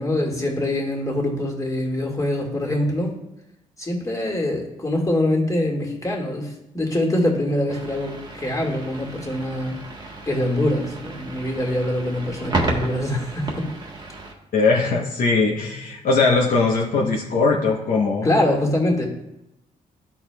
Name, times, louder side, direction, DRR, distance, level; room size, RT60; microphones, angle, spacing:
voice 1, 0.0-3.1 3.8-9.8 10.3-13.7 18.2-19.1, left 1 dB, 20° left, -1 dB, 1.8 m, -24 dB
sound 1, 7.7-14.3, right 2 dB, 25° right, 1.2 m, -32 dB
voice 2, 14.5-18.3, left 4 dB, 65° left, -2 dB, 0.9 m, -20 dB
13.0 x 4.3 x 2.2 m, 0.85 s
cardioid pair, 95°, 16 cm